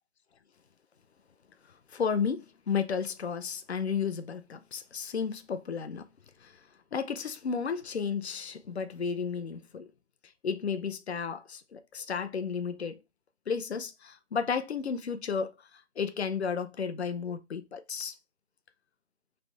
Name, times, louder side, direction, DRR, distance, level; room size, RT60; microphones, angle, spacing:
voice 1, 1.9-6.1 6.4-6.6 6.9-9.9 10.4-13.0 13.5-18.1, left 6 dB, 65° left, 0.6 m, -33 dB
3.3 x 2.7 x 4.0 m
figure-of-eight pair, 170°, 35 cm